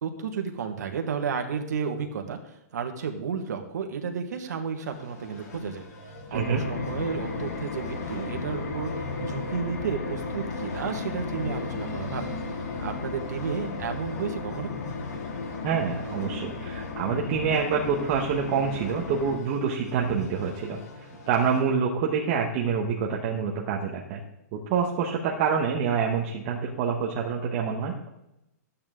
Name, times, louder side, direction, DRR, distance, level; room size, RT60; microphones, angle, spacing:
voice 1, 0.0-5.8 6.3-12.3 12.8-14.7, right 6 dB, 80° right, 5 dB, 1.6 m, -32 dB
sound 1, 4.8-21.6, left 2 dB, 90° left, 3.3 m, -42 dB
sound 2, 6.3-19.4, left 3 dB, 65° left, 1.8 m, -35 dB
voice 2, 6.3-6.6 15.6-24.2 24.5-27.9, right 6 dB, 30° right, -1 dB, 1.1 m, -27 dB
12.5 x 8.6 x 3.7 m, 0.87 s
hypercardioid pair, 165°, 9 cm